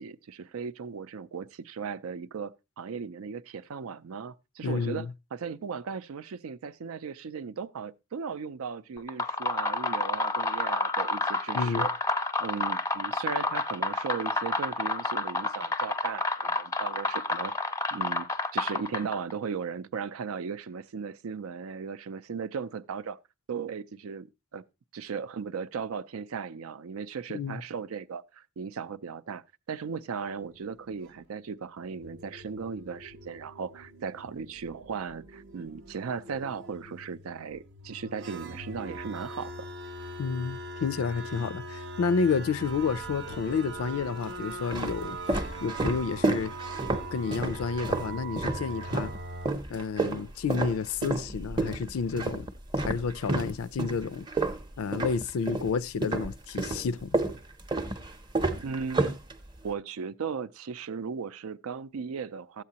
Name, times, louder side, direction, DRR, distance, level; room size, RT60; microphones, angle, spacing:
voice 1, 0.0-11.9 12.4-23.2 23.5-24.3 24.5-24.6 24.9-39.7 58.6-59.2 59.6-62.6, right 6 dB, 85° right, 0.4 m, -37 dB
voice 2, 4.6-5.1 11.5-11.9 27.3-27.6 40.2-46.6 47.1-49.1 49.7-52.5 52.8-54.3 54.8-57.1, left 5 dB, 85° left, 0.4 m, -30 dB
sound 1, 9.0-19.3, left 2 dB, 15° left, 0.4 m, -30 dB
sound 2, 30.4-31.2 31.8-49.5, right 1 dB, 55° right, 0.7 m, -42 dB
sound 3, 42.6-43.4 44.1-49.2 49.4-55.7 56.0-59.7, right 2 dB, 20° right, 0.6 m, -30 dB
12.5 x 8.3 x 2.8 m
head